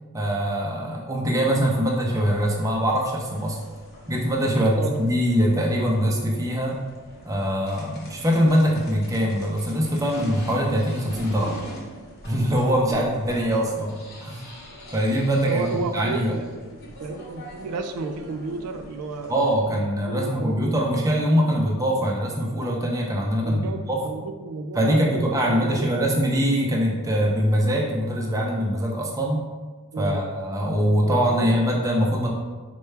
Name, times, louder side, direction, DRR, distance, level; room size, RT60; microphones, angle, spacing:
voice 1, 0.1-3.6 4.1-6.8 7.2-11.6 12.2-14.5 14.9-15.6 15.9-16.4 19.3-24.0 24.7-29.4 30.0-32.3, equal, 15° right, -1 dB, 0.4 m, -23 dB
sound 1, 2.1-19.5, equal, 45° left, 0.9 m, -43 dB
voice 2, 4.5-5.0 12.9-13.1 15.5-19.4 20.1-20.7 23.4-25.9 29.9-30.2 31.0-31.5, right 3 dB, 90° right, 7 dB, 0.3 m, -32 dB
4.5 x 2.2 x 3.2 m, 1.4 s
head